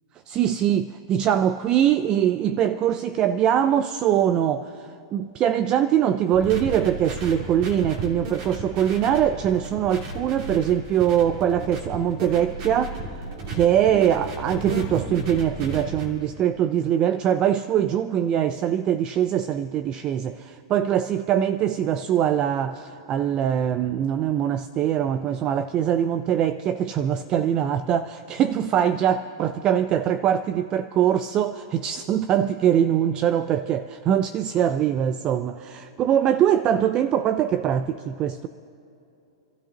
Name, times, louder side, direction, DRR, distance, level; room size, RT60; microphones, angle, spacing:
voice 1, 0.3-13.0 13.5-38.5, right 10 dB, 35° right, 0.4 m, -22 dB
sound 1, 6.3-16.1, right 2 dB, 55° right, 2.7 m, -34 dB
28.5 x 13.0 x 2.9 m
hypercardioid pair, 115°, 3 cm